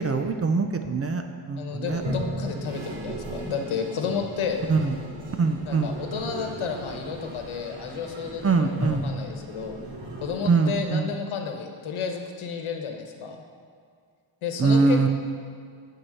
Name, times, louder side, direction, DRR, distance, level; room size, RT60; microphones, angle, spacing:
voice 1, 0.0-2.0 4.7-5.0 5.4-6.0 8.4-9.1 10.4-11.1 14.6-15.1, right 4 dB, 35° right, 6 dB, 0.4 m, -23 dB
voice 2, 1.6-4.6 5.6-9.8 10.2-13.4 14.4-15.1, left 6 dB, 90° left, 4 dB, 1.1 m, -32 dB
Toilet flush, 1.8-10.9, equal, 65° right, 2.3 m, -36 dB
9.2 x 4.6 x 7.5 m, 2.1 s
wide cardioid pair, 175°, 47 cm